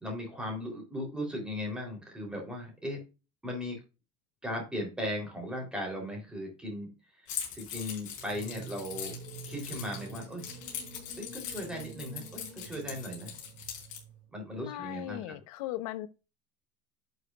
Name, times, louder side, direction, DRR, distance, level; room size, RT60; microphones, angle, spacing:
voice 1, 0.0-3.0 3.4-3.8 4.4-6.9 7.5-9.1 9.5-10.5 11.2-13.3 14.3-15.4, equal, 5° right, 3.5 m, -37 dB
Keys jangling, 7.3-14.0, left 9 dB, 45° left, 4.6 m, -41 dB
sound 1, 8.1-14.3, right 4 dB, 70° right, 5.1 m, -47 dB
voice 2, 14.6-16.1, left 15 dB, 80° left, 1.1 m, -38 dB
11.5 x 6.4 x 2.4 m
cardioid pair, 175°, 18 cm